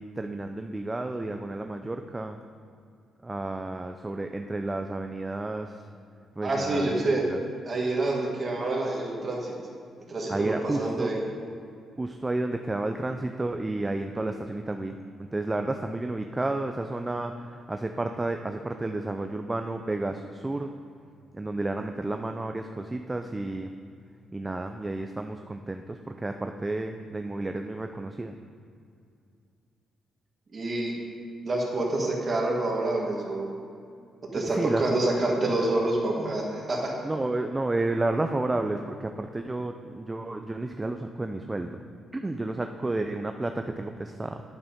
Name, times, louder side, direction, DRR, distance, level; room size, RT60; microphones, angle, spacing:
voice 1, 0.0-2.4 3.2-5.9 6.4-7.4 10.3-11.2 12.0-20.8 21.3-23.7 24.3-28.4 34.4-34.9 37.0-41.8 42.1-44.4, right 2 dB, 15° right, 6 dB, 0.3 m, -31 dB
voice 2, 6.4-7.2 7.7-9.5 10.1-11.2 30.5-30.9 31.4-33.5 34.3-36.9, right 2 dB, 35° right, -1 dB, 1.6 m, -27 dB
9.7 x 5.6 x 5.2 m, 2.4 s
cardioid pair, 125°, 0 cm